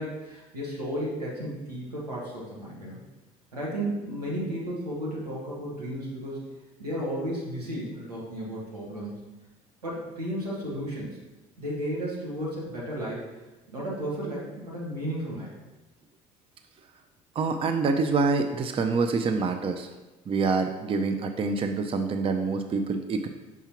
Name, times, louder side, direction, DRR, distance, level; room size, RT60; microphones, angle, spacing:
voice 1, 0.0-3.0 3.5-6.4 6.8-9.1 9.8-11.2 11.6-13.3 13.7-15.5, equal, 90° right, -5 dB, 1.5 m, -33 dB
voice 2, 17.4-19.9 20.3-23.3, right 4 dB, 30° right, 6 dB, 0.5 m, -26 dB
5.9 x 5.6 x 2.9 m, 1.1 s
figure-of-eight pair, 60°, 20 cm